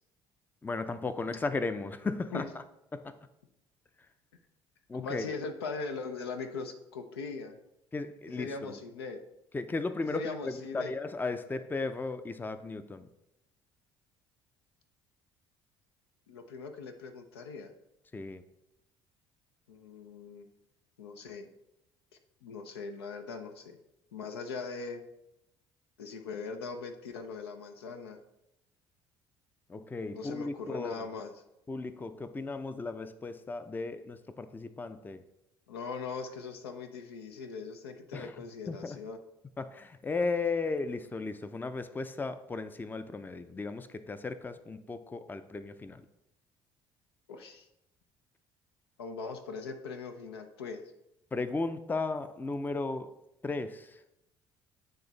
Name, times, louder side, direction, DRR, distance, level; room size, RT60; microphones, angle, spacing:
voice 1, 0.6-2.4 2.9-3.2 4.9-5.3 7.9-8.7 9.5-13.1 18.1-18.4 29.7-31.1 31.7-35.2 38.1-38.3 38.7-39.0 39.6-46.0 51.3-53.1 53.4-54.0, left 3 dB, 15° left, 0.4 m, -35 dB
voice 2, 4.9-7.6 8.3-9.2 10.0-10.9 16.3-17.7 19.7-20.5 21.0-21.5 22.4-23.8 24.1-25.0 26.0-28.2 30.1-31.3 35.7-39.2 47.3-47.7 49.0-50.8, left 4 dB, 85° left, 0.6 m, -40 dB
8.9 x 3.1 x 3.9 m
hypercardioid pair, 60°, 13 cm